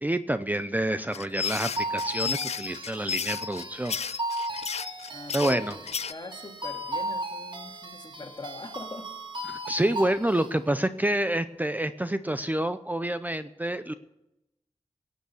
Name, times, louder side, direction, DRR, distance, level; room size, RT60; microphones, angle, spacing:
voice 1, 0.0-4.0 5.3-5.7 9.5-13.9, right 1 dB, 15° right, 11 dB, 0.6 m, -28 dB
sound 1, 1.1-6.1, left 6 dB, 70° left, 0.5 m, -33 dB
sound 2, 1.5-10.5, right 1 dB, 45° right, 1.7 m, -36 dB
voice 2, 5.1-5.8 6.1-9.1, left 2 dB, 40° left, 3 dB, 2.2 m, -41 dB
18.0 x 8.2 x 7.0 m, 0.88 s
wide cardioid pair, 65°, 12 cm